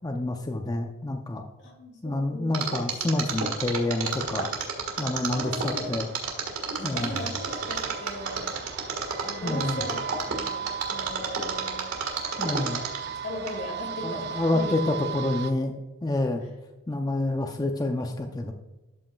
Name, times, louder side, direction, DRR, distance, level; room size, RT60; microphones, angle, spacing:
voice 1, 0.0-1.4 2.0-4.5 5.0-6.1 6.8-7.2 9.4-9.8 12.4-12.8 14.0-15.8 16.0-16.4 16.9-18.5, left 2 dB, 15° left, 4 dB, 0.5 m, -28 dB
voice 2, 1.6-2.9 5.3-5.9 6.8-8.5 9.2-11.9 12.7-12.9 13.2-14.8 16.4-16.5, left 1 dB, 50° left, 0 dB, 2.2 m, -38 dB
Mechanisms, 2.5-13.1 13.5-13.6, right 6 dB, 75° right, 1.6 m, -30 dB
sound 1, 4.0-15.5, right 7 dB, 50° right, 0.5 m, -38 dB
12.5 x 5.4 x 2.3 m, 1.1 s
head